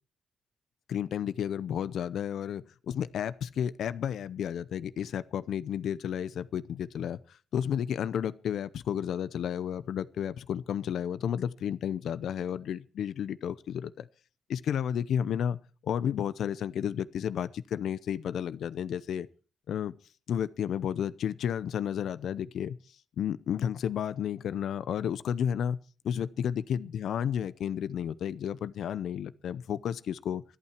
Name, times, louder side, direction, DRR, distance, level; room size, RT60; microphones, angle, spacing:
voice 1, 0.9-14.1 14.5-19.3 19.7-19.9 20.3-22.8 23.2-25.8 26.0-30.4, left 9 dB, 65° left, 0.6 m, -32 dB
25.0 x 8.8 x 4.5 m
wide cardioid pair, 180°, 0 cm